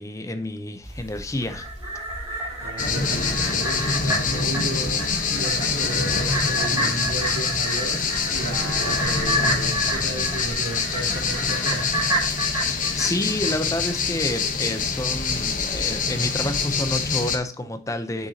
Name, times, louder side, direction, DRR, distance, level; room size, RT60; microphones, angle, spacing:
voice 1, 0.0-1.7 12.7-18.3, left 1 dB, 15° left, 0.7 m, -29 dB
sound 1, 0.8-16.7, equal, 35° right, 3.3 m, -43 dB
sound 2, 1.4-14.0 14.3-14.4, right 1 dB, 20° right, 2.8 m, -30 dB
voice 2, 2.6-12.0, right 2 dB, 75° right, 2.9 m, -34 dB
sound 3, 2.8-17.4, left 5 dB, 45° left, 1.1 m, -25 dB
8.0 x 6.6 x 2.8 m
head